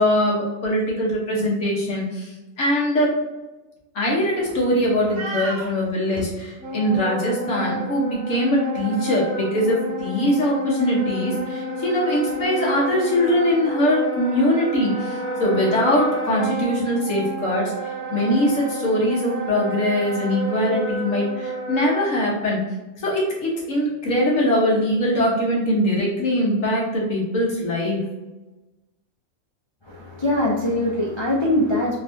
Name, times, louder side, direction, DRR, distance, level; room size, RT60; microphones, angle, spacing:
voice 1, 0.0-2.3 2.6-3.1 3.9-17.7 18.1-22.6 23.0-28.0, left 1 dB, 70° left, -4 dB, 1.6 m, -22 dB
voice 2, 5.2-5.7 6.1-6.2 29.9-32.0, left 1 dB, 35° left, -5 dB, 0.4 m, -23 dB
Wind instrument woodwind instrument, 6.6-22.1, right 1 dB, 5° right, 1.0 m, -30 dB
4.2 x 3.3 x 2.7 m, 1.1 s
omnidirectional pair, 1.4 m